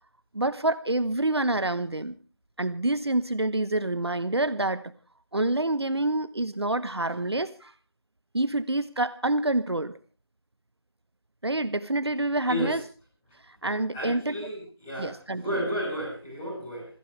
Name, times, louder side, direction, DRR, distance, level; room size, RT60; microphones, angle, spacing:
voice 1, 0.3-2.1 2.6-4.9 5.3-7.7 8.3-9.9 11.4-12.8 13.5-14.5 15.0-15.4, right 2 dB, 70° right, 14 dB, 1.2 m, -27 dB
voice 2, 13.9-16.9, equal, 5° left, -9 dB, 5.8 m, -32 dB
27.0 x 15.5 x 3.4 m, 0.36 s
figure-of-eight pair, 175°, 14 cm